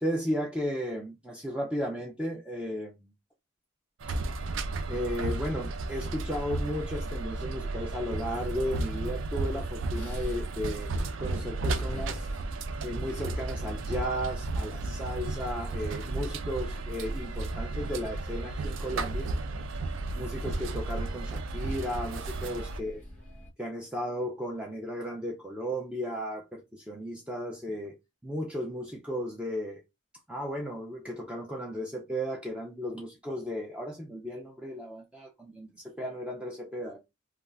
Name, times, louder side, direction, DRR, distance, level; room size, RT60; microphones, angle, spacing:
voice 1, 0.0-3.1 4.9-10.9 11.2-12.3 12.8-19.3 20.2-23.0 23.6-28.0 28.2-29.8 30.3-37.0, equal, 5° right, 0.4 m, -35 dB
sound 1, 4.0-23.5, equal, 10° left, 1.0 m, -45 dB
sound 2, 4.0-22.8, right 2 dB, 75° right, 0.4 m, -33 dB
2.4 x 2.3 x 3.2 m
head